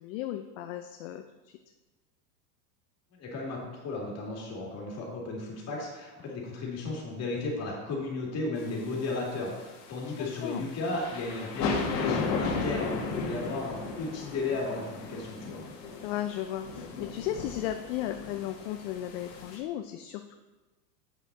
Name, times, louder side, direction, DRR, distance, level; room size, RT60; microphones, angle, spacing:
voice 1, 0.0-1.6 10.2-10.7 16.0-20.4, left 12 dB, 55° left, 6 dB, 0.6 m, -35 dB
voice 2, 3.2-15.6, left 3 dB, 30° left, -3 dB, 2.7 m, -34 dB
sound 1, 8.6-19.6, left 4 dB, 85° left, 1.8 m, -35 dB
8.1 x 5.9 x 4.1 m, 1.1 s
supercardioid pair, 135°, 48 cm